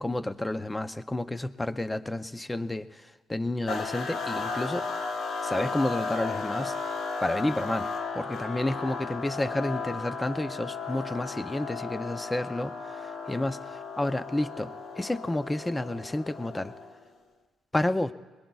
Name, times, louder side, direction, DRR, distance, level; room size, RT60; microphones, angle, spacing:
voice 1, 0.0-3.0 3.3-4.9 5.4-6.8 7.2-7.9 8.1-16.7 17.7-18.1, left 1 dB, 15° left, 12 dB, 0.6 m, -30 dB
sound 1, 3.7-17.1, left 4 dB, 65° left, 1.1 m, -35 dB
22.0 x 20.5 x 2.4 m, 1.3 s
cardioid pair, 90°, 0 cm